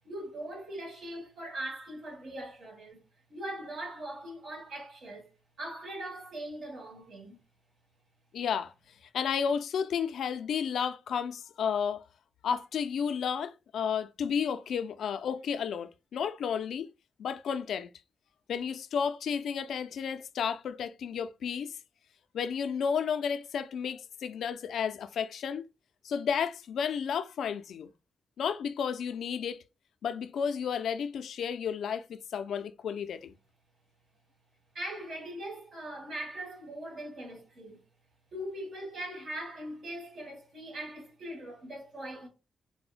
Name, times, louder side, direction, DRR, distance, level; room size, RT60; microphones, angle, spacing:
voice 1, 0.0-3.0 3.3-5.3 5.6-7.4 34.7-37.8 38.3-42.3, right 1 dB, 65° right, 1.9 m, -40 dB
voice 2, 8.3-8.7 9.1-12.0 12.4-16.9 17.2-17.9 18.5-21.8 22.3-25.7 26.0-27.9 28.4-29.6 30.0-33.3, left 7 dB, 80° left, 0.3 m, -32 dB
4.3 x 2.1 x 2.4 m
wide cardioid pair, 125°, 0 cm